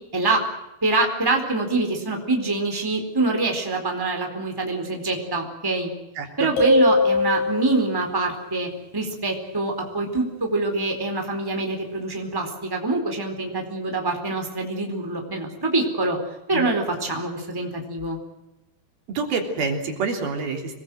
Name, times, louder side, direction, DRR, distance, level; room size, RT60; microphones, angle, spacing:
voice 1, 0.8-5.9 6.4-16.2 16.5-18.2, right 2 dB, 5° right, 3 dB, 3.8 m, -25 dB
voice 2, 6.2-6.5 16.5-16.7 19.2-20.7, right 4 dB, 70° right, 2 dB, 5.3 m, -27 dB
sound 1, 6.6-8.1, left 1 dB, 75° left, 9.7 m, -20 dB
26.5 x 20.5 x 7.8 m, 0.95 s
omnidirectional pair, 4.4 m